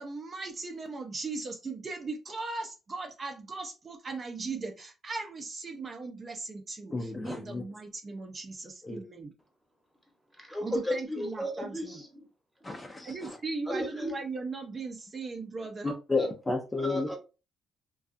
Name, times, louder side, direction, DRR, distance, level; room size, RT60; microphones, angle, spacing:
voice 1, 0.0-9.3 10.6-12.0 13.0-15.9, right 3 dB, 40° right, 4 dB, 0.5 m, -38 dB
voice 2, 6.9-7.6 8.8-9.0 12.6-13.4 15.8-17.1, left 3 dB, 20° left, 3 dB, 0.5 m, -32 dB
voice 3, 10.4-12.3 13.7-14.1 16.2-16.3 16.8-17.2, equal, ahead, 2 dB, 0.9 m, -34 dB
2.5 x 2.3 x 2.5 m, 0.30 s
cardioid pair, 90°, 0 cm